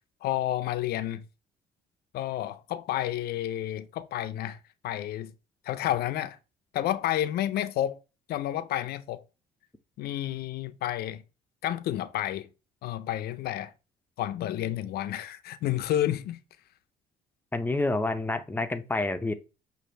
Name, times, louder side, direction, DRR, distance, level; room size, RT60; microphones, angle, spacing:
voice 1, 0.2-1.2 2.1-4.6 4.8-5.3 5.6-6.4 6.7-8.0 8.3-9.2 10.0-11.2 11.6-12.5 12.8-13.7 14.2-16.4, left 12 dB, 65° left, 0.5 m, -30 dB
voice 2, 17.5-19.3, left 2 dB, 10° left, 0.6 m, -28 dB
6.4 x 2.6 x 3.1 m
cardioid pair, 110°, 17 cm